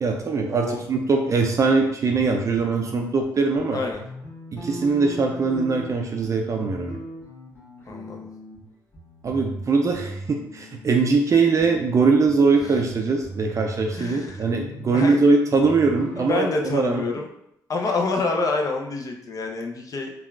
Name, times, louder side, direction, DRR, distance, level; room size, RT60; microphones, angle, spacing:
voice 1, 0.0-3.8 4.5-7.0 9.2-16.5 16.7-17.0, right 4 dB, 40° right, 2 dB, 0.4 m, -21 dB
voice 2, 3.7-4.0 7.9-8.3 13.9-14.5 14.9-15.2 16.2-17.3 17.7-20.1, left 3 dB, 50° left, 2 dB, 0.6 m, -27 dB
sound 1, 3.9-8.6 8.9-11.3 11.6-16.3, right 1 dB, 35° left, 1.2 m, -39 dB
3.5 x 2.3 x 2.3 m, 0.77 s
supercardioid pair, 65°, 8 cm